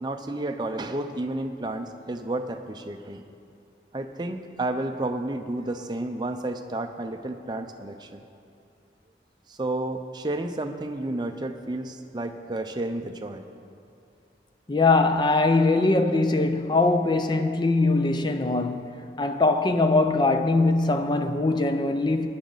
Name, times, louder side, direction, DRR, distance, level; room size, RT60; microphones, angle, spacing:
voice 1, 0.0-3.2 3.9-8.2 9.5-13.5, right 2 dB, 25° right, 0.5 m, -31 dB
voice 2, 14.7-22.3, left 3 dB, 25° left, 0.5 m, -22 dB
16.5 x 10.5 x 4.0 m
head